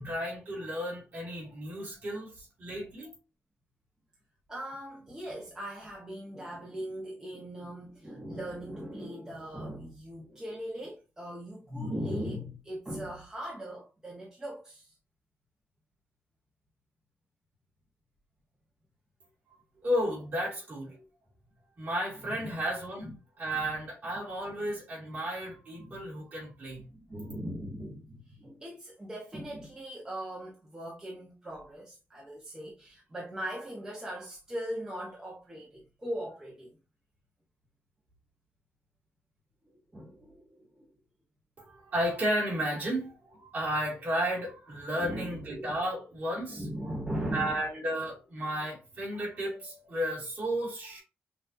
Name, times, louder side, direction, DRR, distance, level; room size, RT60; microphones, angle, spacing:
voice 1, 0.0-2.3 2.6-3.1 19.8-21.0 21.8-23.1 23.4-26.8 41.6-46.6 47.3-51.0, equal, 40° right, 2.4 m, -33 dB
voice 2, 4.5-14.9 22.3-22.6 23.0-23.2 23.5-23.7 25.8-26.0 26.9-36.8 39.9-40.9 44.9-45.8 46.5-47.6, equal, 15° right, 1.0 m, -39 dB
5.7 x 2.7 x 2.6 m
wide cardioid pair, 175°, 4 cm